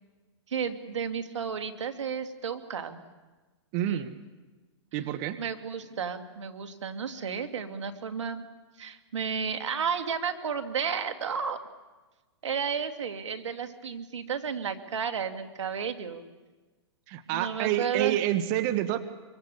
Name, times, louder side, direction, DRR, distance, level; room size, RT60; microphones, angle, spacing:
voice 1, 0.5-3.0 3.9-4.1 5.4-8.4 8.8-11.6 12.4-16.3 17.3-18.2, right 6 dB, 85° right, 7 dB, 2.4 m, -32 dB
voice 2, 3.7-4.2 4.9-5.4 17.1-19.0, right 13 dB, 45° right, 10 dB, 1.4 m, -28 dB
25.0 x 24.5 x 7.1 m, 1.2 s
hypercardioid pair, 130°, 15 cm